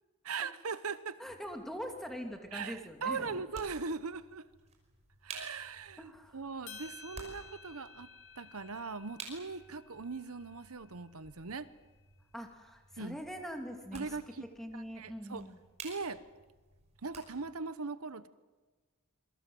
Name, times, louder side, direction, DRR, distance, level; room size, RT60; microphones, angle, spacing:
voice 1, 0.2-1.2 2.5-4.4 5.2-8.1 8.4-11.7 13.0-13.2 13.9-14.5 14.7-15.5 15.8-16.2 17.0-18.3, right 4 dB, 75° right, 14 dB, 1.0 m, -40 dB
voice 2, 1.2-3.4 6.0-6.4 12.3-14.1 14.6-15.6, equal, ahead, 3 dB, 2.5 m, -43 dB
sound 1, 1.3-17.6, right 4 dB, 30° right, 5.7 m, -54 dB
sound 2, 6.7-11.1, left 4 dB, 60° left, 3.7 m, -54 dB
27.5 x 22.5 x 7.8 m, 1.3 s
head